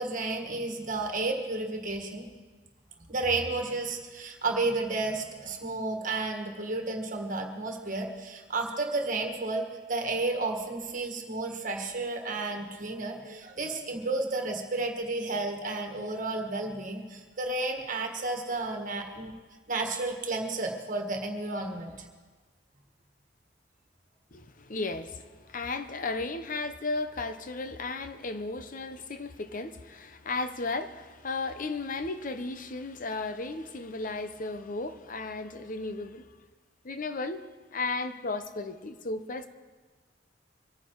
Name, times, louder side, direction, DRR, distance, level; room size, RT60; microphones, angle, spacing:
voice 1, 0.0-2.3 3.1-19.3 19.7-21.9, right 3 dB, 45° right, 1.7 m, -32 dB
voice 2, 24.3-36.3 36.8-37.4 37.7-39.5, left 3 dB, 50° left, 0.9 m, -35 dB
24.5 x 9.8 x 4.7 m
head